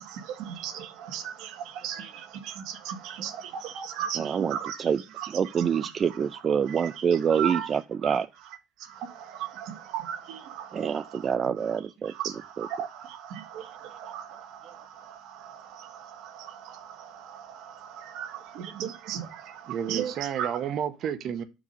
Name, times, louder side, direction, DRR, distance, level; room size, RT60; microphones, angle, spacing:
voice 1, 0.0-4.9 5.2-5.3 5.6-5.9 7.3-7.7 8.0-8.2 8.8-11.2 12.1-20.5, right 9 dB, 75° right, 1.5 m, -37 dB
voice 2, 4.2-5.0 5.3-8.3 10.7-12.1 12.6-12.7, right 7 dB, 35° right, 0.4 m, -26 dB
voice 3, 13.6-14.0 14.3-14.7 19.7-21.4, right 9 dB, 55° right, 0.9 m, -33 dB
7.2 x 4.9 x 5.3 m
cardioid pair, 115°, 0 cm